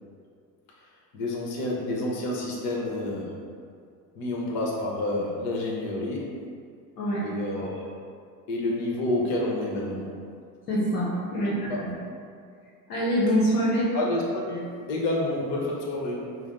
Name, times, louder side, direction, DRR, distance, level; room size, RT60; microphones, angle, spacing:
voice 1, 1.1-3.4 4.1-6.4 7.2-7.9 8.5-10.1 11.3-11.9 13.9-16.4, left 2 dB, 60° left, -2 dB, 1.1 m, -29 dB
voice 2, 7.0-7.3 10.7-11.9 12.9-13.9, equal, 85° left, -7 dB, 0.9 m, -25 dB
5.6 x 2.0 x 4.0 m, 2.2 s
hypercardioid pair, 70°, 47 cm